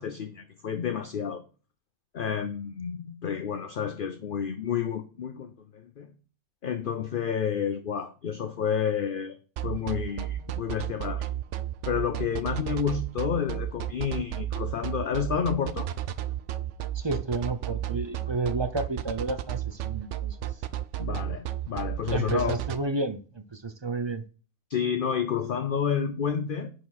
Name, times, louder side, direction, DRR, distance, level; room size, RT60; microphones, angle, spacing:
voice 1, 0.0-1.4 2.1-6.1 6.6-9.4 9.6-11.3 11.9-15.9 21.0-22.6 24.7-26.7, left 7 dB, 50° left, 0.7 m, -30 dB
sound 1, 9.6-22.8, right 12 dB, 65° right, 0.9 m, -32 dB
voice 2, 16.9-20.5 22.1-24.2, right 3 dB, 25° right, 0.6 m, -31 dB
10.5 x 4.6 x 4.2 m
omnidirectional pair, 1.4 m